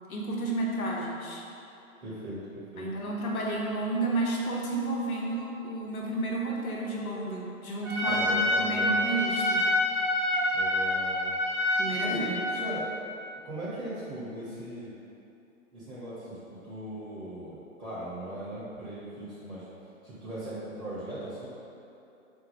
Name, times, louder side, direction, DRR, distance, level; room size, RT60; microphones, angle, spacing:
voice 1, 0.1-1.4 2.8-9.7 11.7-12.3, right 2 dB, 90° left, -3 dB, 0.9 m, -31 dB
voice 2, 2.0-2.9 8.1-9.0 10.5-11.3 12.0-12.9 13.4-14.9 15.7-19.7 20.0-21.5, right 1 dB, 5° right, -19 dB, 0.4 m, -39 dB
Trumpet, 7.8-12.7, left 1 dB, 55° right, 0.8 m, -27 dB
4.6 x 2.3 x 3.3 m, 2.9 s
hypercardioid pair, 145°, 42 cm